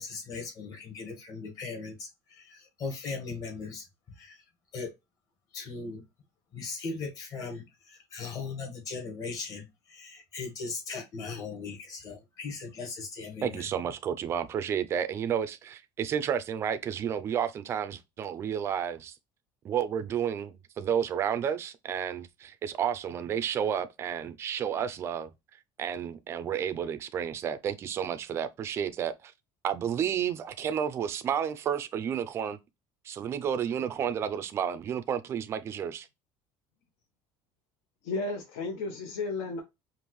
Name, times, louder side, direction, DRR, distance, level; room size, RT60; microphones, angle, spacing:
voice 1, 0.0-3.9 4.2-4.4 4.7-4.9 5.5-6.0 6.5-13.7, left 4 dB, 35° left, 1.5 m, -38 dB
voice 2, 13.4-19.2 19.6-29.3 29.6-32.6 33.0-36.1, right 8 dB, 25° right, 0.4 m, -31 dB
voice 3, 38.0-39.6, left 3 dB, 80° left, 1.2 m, -33 dB
5.2 x 2.5 x 3.1 m
cardioid pair, 175°, 10 cm